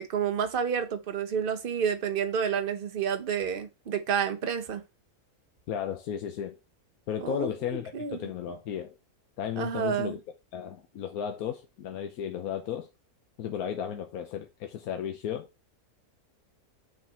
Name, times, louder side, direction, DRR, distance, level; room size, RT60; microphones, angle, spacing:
voice 1, 0.0-4.8 7.2-7.5 7.9-8.3 9.6-10.2, right 7 dB, 45° right, 0.9 m, -29 dB
voice 2, 5.7-6.6 7.1-8.9 9.4-10.2 10.5-12.9 13.4-15.5, left 9 dB, 85° left, 1.2 m, -34 dB
6.4 x 4.1 x 4.2 m
omnidirectional pair, 1.5 m